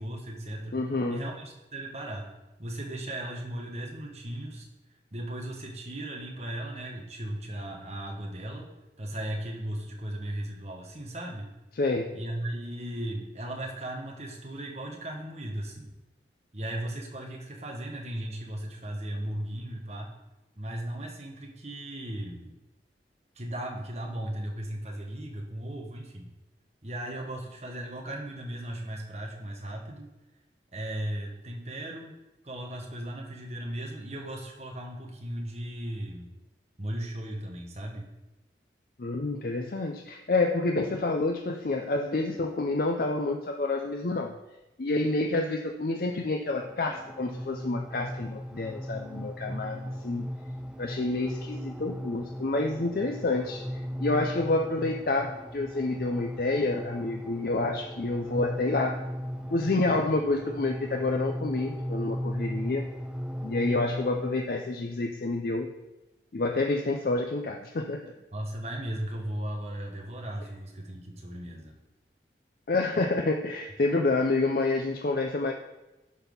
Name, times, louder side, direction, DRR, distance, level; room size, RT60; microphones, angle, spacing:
voice 1, 0.0-0.8 1.1-2.3 2.6-4.7 5.1-8.7 9.0-11.5 12.1-15.9 16.5-20.1 20.6-22.6 23.3-26.3 26.8-30.1 30.7-32.1 32.4-36.3 36.8-38.1 68.3-71.7, right 1 dB, 40° right, 0 dB, 1.4 m, -36 dB
voice 2, 0.7-1.2 11.8-12.2 39.0-44.3 44.8-50.3 50.8-53.6 54.0-59.0 59.5-62.8 63.4-65.7 66.3-68.1 72.7-75.5, left 2 dB, 55° left, 3 dB, 0.5 m, -28 dB
sound 1, 46.5-64.4, equal, 5° right, 0.4 m, -37 dB
11.0 x 4.2 x 5.4 m, 1.0 s
head